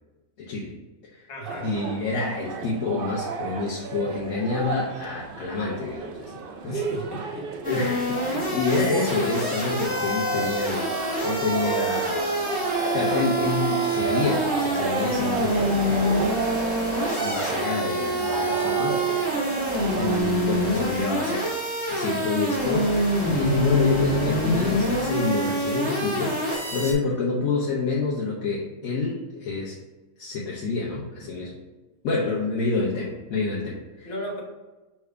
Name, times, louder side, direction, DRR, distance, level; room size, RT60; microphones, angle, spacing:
voice 1, 0.4-0.7 1.1-1.3 1.6-6.3 6.6-6.8 7.6-10.9 11.2-12.2 12.7-16.4 17.2-19.4 20.0-21.5 21.9-23.0 23.3-29.8 30.2-31.6 32.0-34.1, left 4 dB, 70° left, -4 dB, 1.1 m, -28 dB
voice 2, 1.3-1.7 6.6-7.5 34.0-34.4, equal, 55° left, -2 dB, 1.2 m, -35 dB
sound 1, 1.5-20.2, right 5 dB, 90° right, 0.4 m, -32 dB
sound 2, 7.6-26.9, right 1 dB, 5° right, 1.3 m, -26 dB
3.4 x 3.3 x 4.7 m, 1.2 s
omnidirectional pair, 1.5 m